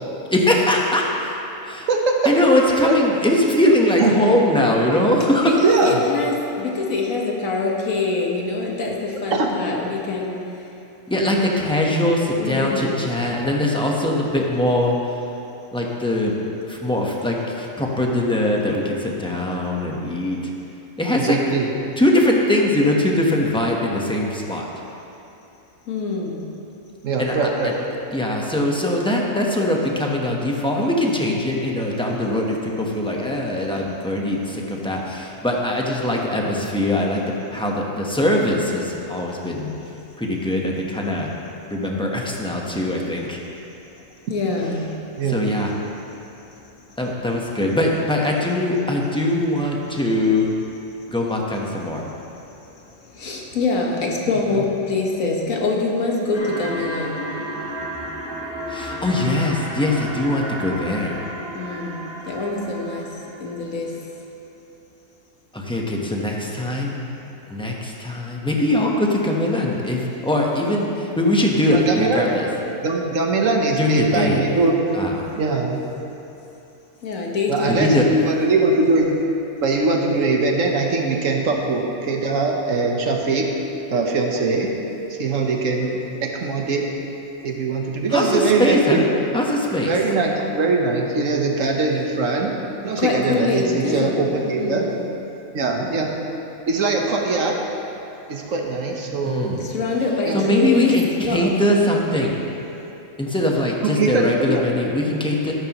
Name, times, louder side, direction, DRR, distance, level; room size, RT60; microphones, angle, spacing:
voice 1, 0.3-1.4 1.6-1.9 2.2-5.6 11.1-15.2 15.7-16.3 16.7-20.5 21.0-21.4 22.0-24.8 27.2-27.4 27.6-27.7 28.1-37.2 37.5-39.7 40.2-41.3 41.7-43.4 45.3-45.7 47.0-50.5 51.1-52.1 58.7-61.2 65.5-67.0 67.5-72.5 73.8-74.4 74.9-75.2 77.7-78.0 88.1-89.0 89.3-89.9 99.2-99.6 100.3-102.4 103.2-105.5, left 1 dB, 5° left, -2 dB, 1.0 m, -21 dB
voice 2, 1.9-2.3 2.8-3.0 4.0-4.1 5.6-6.0 9.3-9.5 21.2-21.7 27.0-27.7 45.1-45.4 54.3-54.4 71.7-72.3 72.8-74.8 75.4-75.8 77.5-79.1 79.6-83.5 83.9-84.7 85.1-86.9 87.4-89.0 89.9-92.5 92.8-94.8 95.5-96.1 96.7-97.6 98.3-99.6 100.2-100.4 103.8-104.6, right 3 dB, 70° right, 1 dB, 1.4 m, -21 dB
voice 3, 5.4-10.4 12.4-13.1 25.9-26.4 44.3-44.9 46.2-46.3 53.1-57.3 61.5-64.0 77.0-77.9 93.0-94.2 94.6-95.0 99.6-101.5, left 3 dB, 80° left, -1 dB, 1.7 m, -24 dB
sound 1, 56.3-63.5, equal, 30° right, 2.7 m, -32 dB
13.5 x 12.0 x 3.0 m, 2.9 s
omnidirectional pair, 1.4 m